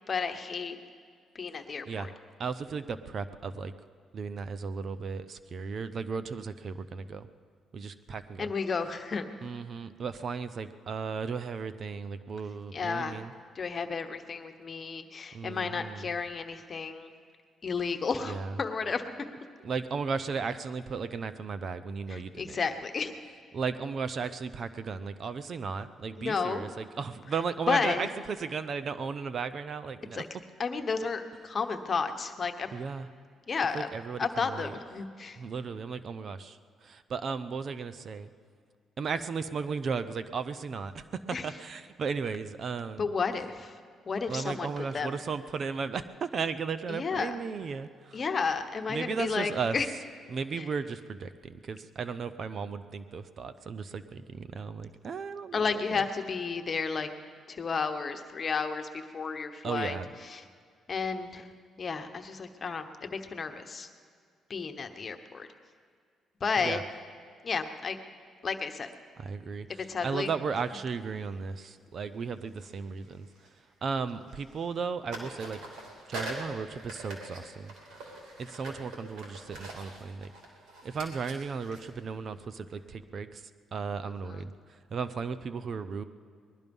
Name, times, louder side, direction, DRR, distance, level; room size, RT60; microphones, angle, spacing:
voice 1, 0.1-0.8 1.3-2.1 8.4-9.2 12.7-13.2 13.5-17.1 17.6-19.0 22.1-23.2 26.2-26.7 27.7-28.1 30.1-30.3 30.6-32.7 33.5-33.9 34.2-35.4 41.3-41.5 43.0-43.8 44.1-45.1 46.9-47.3 48.1-49.9 50.6-50.7 55.5-57.1 57.5-60.0 60.2-60.4 60.9-61.5 61.8-63.9 64.5-65.5 66.4-66.8 67.4-68.0 68.4-68.9 69.9-70.3 84.3-84.4, left 5 dB, 40° left, 7 dB, 1.1 m, -32 dB
voice 2, 2.4-3.7 4.1-7.3 7.7-8.5 9.4-13.3 15.3-16.1 18.2-18.6 19.6-22.6 23.5-30.2 32.7-33.1 33.7-34.8 35.3-38.3 39.0-43.0 44.3-48.2 48.9-49.8 50.3-56.0 59.6-60.1 66.6-66.8 69.2-73.3 73.8-75.6 76.1-77.7 78.0-78.1 78.4-80.3 80.8-83.4 83.7-86.0, right 5 dB, 50° right, 12 dB, 0.7 m, -35 dB
sound 1, 70.9-71.1 72.5-73.8 74.1-74.8 75.1-82.8, right 2 dB, 80° right, 3.2 m, -44 dB
20.5 x 12.0 x 5.4 m, 2.2 s
cardioid pair, 90°, 0 cm